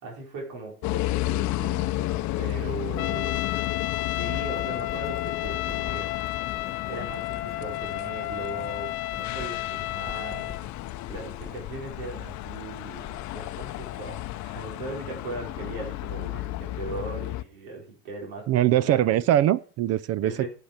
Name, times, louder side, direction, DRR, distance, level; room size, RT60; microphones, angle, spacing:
voice 1, 0.0-3.5 4.0-6.1 6.8-10.5 11.1-19.1 20.2-20.5, right 3 dB, 65° right, 4.8 m, -39 dB
sound 1, 0.8-17.4, left 16 dB, 45° left, 0.7 m, -33 dB
Writing, 2.6-7.9 8.2-11.9, left 4 dB, 5° left, 2.1 m, -47 dB
Trumpet, 3.0-10.6, left 17 dB, 90° left, 0.8 m, -32 dB
voice 2, 18.5-20.5, right 12 dB, 40° right, 0.5 m, -22 dB
12.0 x 7.4 x 5.0 m
supercardioid pair, 115°, 41 cm